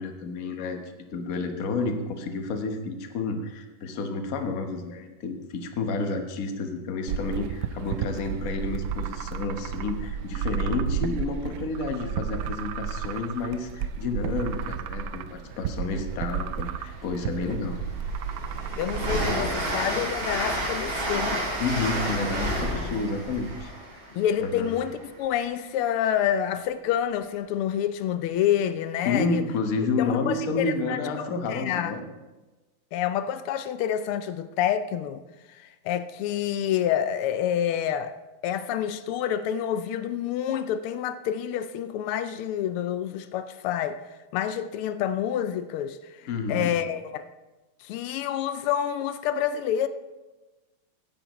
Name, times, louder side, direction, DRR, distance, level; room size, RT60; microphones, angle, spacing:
voice 1, 0.0-17.8 21.6-23.7 24.4-24.7 29.0-32.0 46.3-46.7, left 3 dB, 50° left, 1.2 m, -30 dB
sound 1, 7.1-19.2, right 7 dB, 75° right, 1.2 m, -32 dB
Train, 16.9-17.0 17.4-25.1, right 1 dB, 45° right, 3.3 m, -30 dB
voice 2, 18.8-21.4 24.1-29.4 30.0-31.9 32.9-35.2 35.6-38.2 38.4-44.0 44.3-47.3 47.8-49.9, left 10 dB, 85° left, 1.5 m, -28 dB
16.0 x 10.5 x 3.0 m
omnidirectional pair, 2.4 m